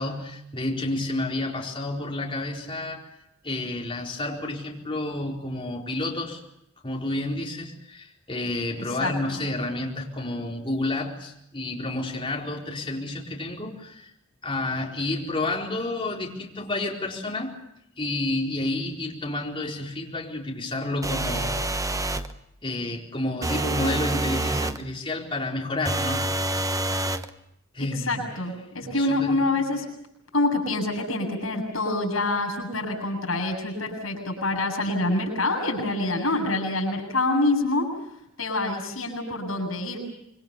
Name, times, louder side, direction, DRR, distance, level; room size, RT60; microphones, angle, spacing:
voice 1, 0.0-3.1 3.4-6.4 6.8-14.1 14.4-17.5 18.0-22.2 22.6-26.3 27.7-28.2 28.8-29.5, left 2 dB, 25° left, -1 dB, 4.4 m, -30 dB
sound 1, 21.0-22.3 23.4-24.8 25.9-27.3, right 2 dB, 15° right, 1.0 m, -27 dB
voice 2, 27.8-29.9 30.3-37.9 38.4-40.0, left 2 dB, 85° left, 2 dB, 7.3 m, -26 dB
26.0 x 24.0 x 6.8 m, 0.80 s
head